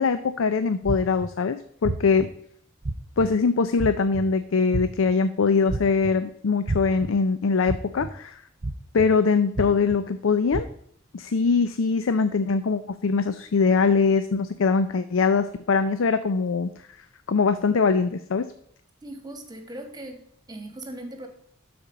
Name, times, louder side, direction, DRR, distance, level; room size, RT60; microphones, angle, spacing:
voice 1, 0.0-2.3 3.2-8.4 8.9-10.7 11.1-16.7 17.3-18.5, left 4 dB, 90° left, 11 dB, 0.5 m, -22 dB
sound 1, 0.9-1.3 1.8-2.3 2.8-3.3 3.8-4.2 4.7-5.1 5.7-6.1 6.7-7.1 7.7-8.1 8.6-9.1 9.6-10.0 10.5-10.6, right 2 dB, 40° right, 0.6 m, -29 dB
voice 2, 19.0-21.3, right 1 dB, 20° right, 6 dB, 1.4 m, -39 dB
12.0 x 4.4 x 4.9 m, 0.69 s
head